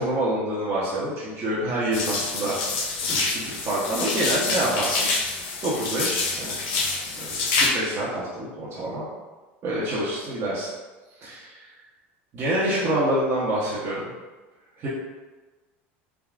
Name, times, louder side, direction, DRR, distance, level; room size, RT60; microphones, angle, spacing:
voice 1, 0.0-2.6 3.1-6.6 7.2-9.1 9.6-10.7 11.2-11.7 12.3-14.1 14.8-14.9, right 1 dB, 45° right, -8 dB, 0.8 m, -27 dB
sound 1, 1.9-7.7, left 3 dB, 75° left, 0.6 m, -27 dB
3.5 x 2.2 x 2.4 m, 1.2 s
supercardioid pair, 95°, 6 cm